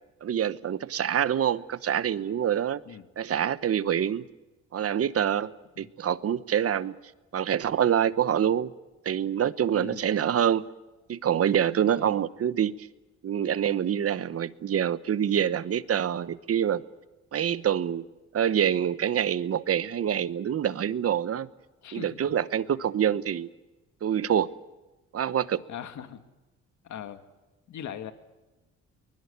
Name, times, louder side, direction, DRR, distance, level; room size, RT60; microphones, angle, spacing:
voice 1, 0.2-2.8 3.2-4.3 4.7-7.0 7.3-8.7 9.0-10.7 11.1-12.9 13.2-16.8 17.3-18.1 18.3-21.5 21.9-23.5 24.0-24.5 25.1-25.6, right 9 dB, 50° right, 1.1 m, -26 dB
voice 2, 9.7-10.1 12.0-12.2 21.8-22.3 25.7-26.2 26.8-27.2 27.7-28.1, left 9 dB, 70° left, 2.2 m, -40 dB
23.5 x 21.5 x 8.2 m
cardioid pair, 90°, 30 cm